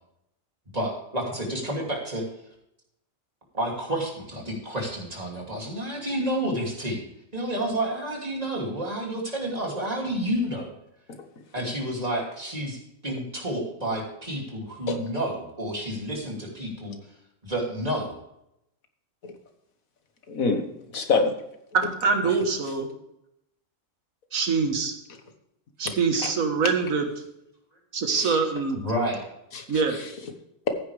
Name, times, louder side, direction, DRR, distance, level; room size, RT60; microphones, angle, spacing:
voice 1, 0.7-2.2 3.5-7.0 7.3-10.7 11.5-17.0 17.4-18.1 28.7-29.2, right 1 dB, 30° right, -1 dB, 2.8 m, -30 dB
voice 2, 20.3-21.3 22.2-22.3 25.9-26.0 26.2-26.3 28.1-28.4 29.5-30.1, left 4 dB, 90° left, 6 dB, 1.8 m, -27 dB
voice 3, 21.7-22.9 24.3-24.9 25.8-27.1 27.9-28.8 29.7-30.0, right 5 dB, 85° right, 5 dB, 1.8 m, -24 dB
14.5 x 9.6 x 3.4 m, 0.81 s
omnidirectional pair, 1.4 m